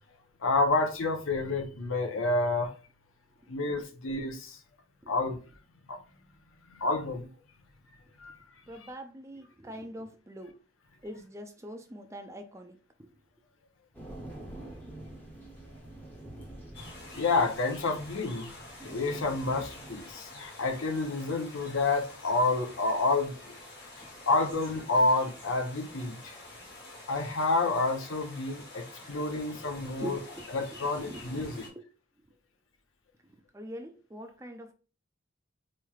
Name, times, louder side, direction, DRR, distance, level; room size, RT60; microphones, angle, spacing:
voice 1, 0.4-2.7 3.5-4.6 5.1-5.4 5.9-6.0 6.7-7.3 8.2-8.4 17.1-18.5 18.8-23.6 24.3-26.4 27.1-30.2 30.5-31.7, left 3 dB, 85° left, 0.7 m, -29 dB
voice 2, 8.7-10.6 11.0-13.1 24.0-24.1 29.5-29.7 30.0-31.9 33.3-34.7, right 1 dB, 15° right, 0.4 m, -44 dB
sound 1, 13.9-20.0, right 1 dB, 10° left, 0.8 m, -46 dB
sound 2, 16.7-31.7, left 2 dB, 55° left, 1.3 m, -48 dB
4.2 x 3.1 x 2.3 m
head